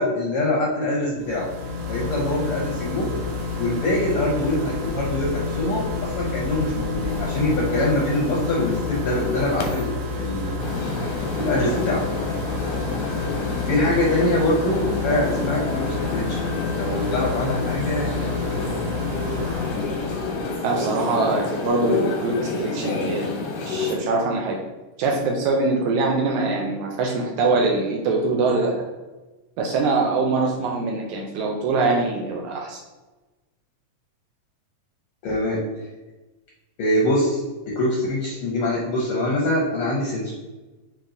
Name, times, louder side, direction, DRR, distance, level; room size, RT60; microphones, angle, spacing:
voice 1, 0.0-1.5 1.9-3.1 3.6-9.9 10.2-10.7 11.3-12.0 13.6-15.8 16.1-18.8 35.2-35.6 36.8-37.4 37.7-40.3, left 1 dB, 75° left, -3 dB, 1.3 m, -24 dB
sound 1, 1.2-20.6, left 3 dB, 65° right, 1.8 m, -29 dB
sound 2, 7.1-9.8 10.6-24.0, left 4 dB, 90° left, 2.2 m, -30 dB
voice 2, 20.6-23.3 23.7-24.6 25.0-28.7 29.6-32.8, right 3 dB, 80° right, 0 dB, 1.9 m, -23 dB
5.3 x 2.4 x 3.8 m, 1.1 s
omnidirectional pair, 3.5 m